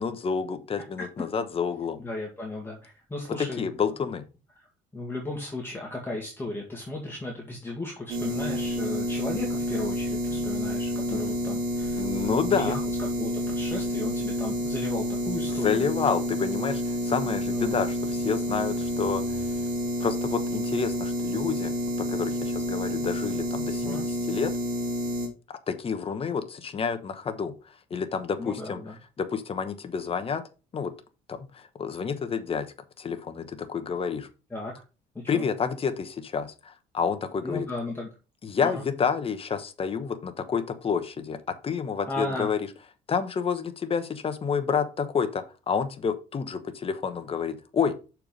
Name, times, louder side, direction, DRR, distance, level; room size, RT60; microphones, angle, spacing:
voice 1, 0.0-2.0 3.4-4.2 11.1-11.2 11.9-12.8 15.5-19.5 20.0-24.5 25.5-28.8 29.2-30.4 30.7-30.9 31.3-34.3 35.3-37.7 38.4-41.4 41.6-42.7 43.1-47.9, left 6 dB, 35° left, 9 dB, 1.1 m, -29 dB
voice 2, 2.0-3.7 4.9-15.9 17.5-17.8 23.8-24.1 28.4-29.0 34.5-34.8 35.3-35.5 37.4-38.1 38.6-38.8 42.1-42.5, left 2 dB, 15° left, -1 dB, 2.0 m, -35 dB
sound 1, 8.1-25.3, equal, 55° right, 2.9 m, -29 dB
6.6 x 4.6 x 5.2 m, 0.32 s
cardioid pair, 110°, 17 cm